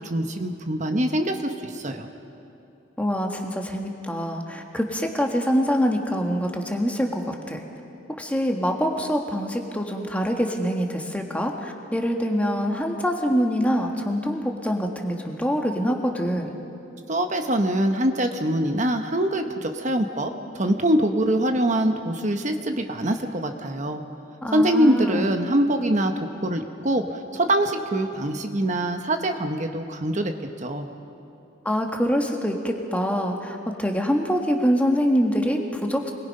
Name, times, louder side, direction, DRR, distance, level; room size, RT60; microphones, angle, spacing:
voice 1, 0.0-2.1 17.1-24.0 24.5-30.3 30.6-30.9, right 1 dB, 35° right, 5 dB, 1.0 m, -24 dB
voice 2, 3.0-7.6 8.2-16.6 24.4-25.3 31.7-36.1, equal, 5° left, 2 dB, 1.7 m, -25 dB
28.5 x 22.0 x 5.5 m, 2.7 s
head